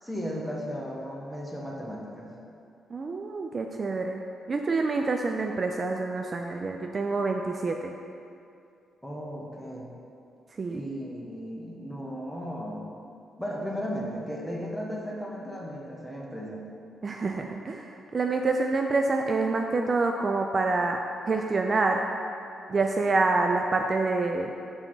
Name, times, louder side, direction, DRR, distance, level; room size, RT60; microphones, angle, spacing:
voice 1, 0.0-2.3 9.0-9.9 10.7-12.9 13.4-16.6, equal, ahead, -3 dB, 1.1 m, -35 dB
voice 2, 2.9-4.2 4.5-7.9 10.6-10.8 17.0-22.0 22.7-24.5, right 3 dB, 45° right, 3 dB, 0.4 m, -27 dB
5.8 x 4.6 x 3.8 m, 2.5 s
supercardioid pair, 65°, 0 cm